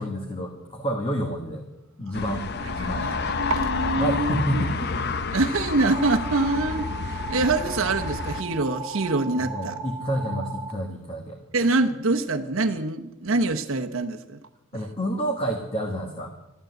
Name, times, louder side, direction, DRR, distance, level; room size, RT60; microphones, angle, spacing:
voice 1, 0.0-1.6 2.0-2.4 2.7-3.1 4.0-4.9 9.4-11.4 14.7-16.3, equal, 25° left, 2 dB, 1.4 m, -29 dB
sound 1, 2.1-8.4, left 4 dB, 50° left, 0.7 m, -29 dB
voice 2, 2.1-4.7 5.3-9.8 11.5-14.4, right 2 dB, 60° right, 4 dB, 0.9 m, -25 dB
sound 2, 5.9-10.7, right 4 dB, 45° right, 1.8 m, -36 dB
13.0 x 12.0 x 7.9 m, 0.94 s
head